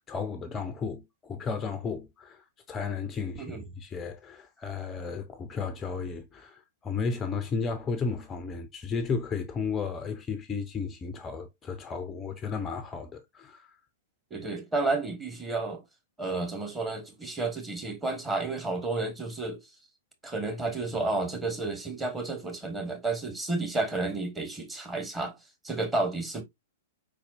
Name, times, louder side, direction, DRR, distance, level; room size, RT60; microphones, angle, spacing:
voice 1, 0.0-13.8, left 5 dB, 20° left, 0.6 m, -34 dB
voice 2, 14.3-15.8 16.2-19.6 20.2-25.3 25.6-26.4, right 3 dB, 15° right, 1.4 m, -31 dB
4.7 x 4.1 x 2.5 m
figure-of-eight pair, 105°, 0 cm